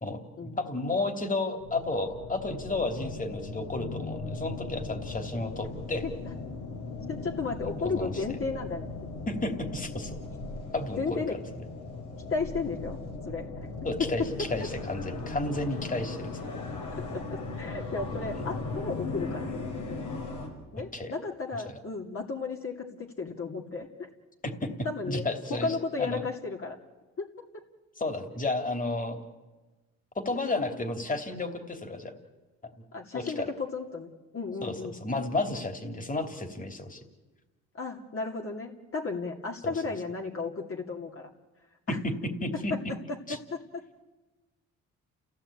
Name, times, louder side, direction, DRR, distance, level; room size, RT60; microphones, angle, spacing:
voice 1, 0.0-6.0 7.8-8.2 9.3-10.1 10.7-11.2 13.8-16.6 20.9-21.1 21.6-21.8 24.4-24.7 25.1-26.2 28.0-29.3 30.1-32.1 32.6-32.7 33.1-33.5 34.6-34.7 35.0-37.0 39.6-39.7 41.9-42.7 43.3-43.4, left 2 dB, 25° left, 7 dB, 3.2 m, -32 dB
sound 1, 1.5-20.5, left 3 dB, 80° left, 5.7 m, -38 dB
voice 2, 7.1-8.9 11.0-11.4 12.3-13.0 13.3-13.5 14.0-14.1 14.4-14.7 17.1-19.5 20.7-24.1 24.8-26.8 27.2-27.6 32.9-35.0 37.7-41.3 41.9-42.0 42.7-43.2 43.5-43.8, left 4 dB, 45° left, 1 dB, 2.6 m, -34 dB
30.0 x 16.0 x 8.8 m, 1.2 s
cardioid pair, 90°, 30 cm